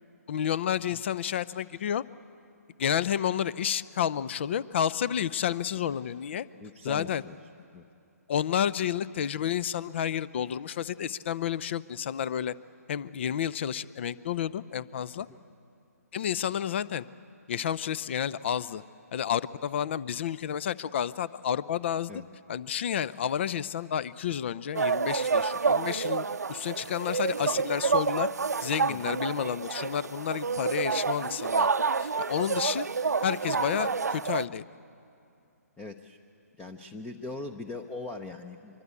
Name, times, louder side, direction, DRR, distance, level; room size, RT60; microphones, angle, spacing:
voice 1, 0.3-2.0 2.8-6.5 6.8-7.2 8.3-12.5 12.9-15.3 16.1-17.0 17.5-18.8 19.1-22.1 22.5-28.3 28.6-31.7 32.0-32.9 33.2-34.6, left 9 dB, 45° left, 18 dB, 0.6 m, -30 dB
voice 2, 6.6-7.3 7.7-7.8 22.1-22.2 28.9-29.2 35.8-36.2 36.6-38.8, left 3 dB, 10° left, 6 dB, 0.8 m, -40 dB
sound 1, 24.7-34.5, right 5 dB, 75° right, 0.6 m, -29 dB
25.0 x 23.5 x 8.4 m, 2.6 s
figure-of-eight pair, 140°, 9 cm